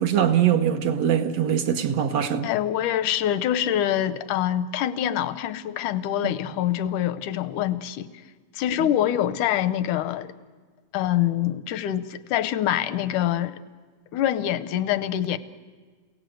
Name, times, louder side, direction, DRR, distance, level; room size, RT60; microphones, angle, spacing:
voice 1, 0.0-2.5 6.2-6.3, right 9 dB, 65° right, 1.8 m, -22 dB
voice 2, 2.4-8.1 8.5-10.3 10.9-13.6 14.1-15.4, left 11 dB, 85° left, 2.3 m, -25 dB
29.0 x 17.0 x 7.8 m
omnidirectional pair, 3.5 m